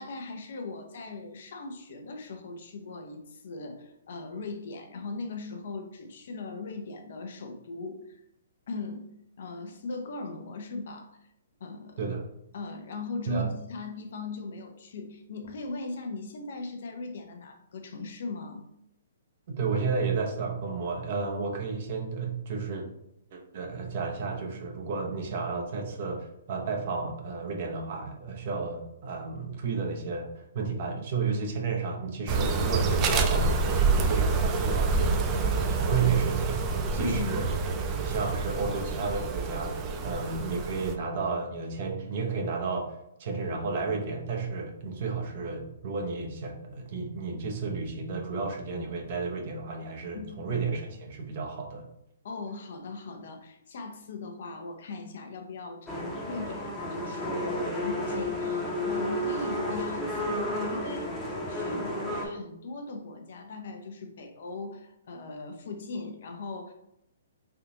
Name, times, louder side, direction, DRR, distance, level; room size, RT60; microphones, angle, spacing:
voice 1, 0.0-8.2 8.7-9.1 9.4-11.1 11.6-12.0 12.5-18.7 35.0-35.2 37.0-37.5 50.1-50.4 52.2-61.1 61.5-66.7, left 3 dB, 65° left, 5 dB, 0.6 m, -39 dB
voice 2, 19.5-22.9 23.3-35.1 35.5-36.6 36.9-37.5 38.0-39.7 40.0-51.9, right 4 dB, 50° right, 2 dB, 0.7 m, -32 dB
sound 1, 32.3-40.9, right 4 dB, 25° right, 0.4 m, -27 dB
sound 2, 55.9-62.3, left 1 dB, 10° left, 0.8 m, -32 dB
3.4 x 2.4 x 2.8 m, 0.81 s
hypercardioid pair, 140°, 0 cm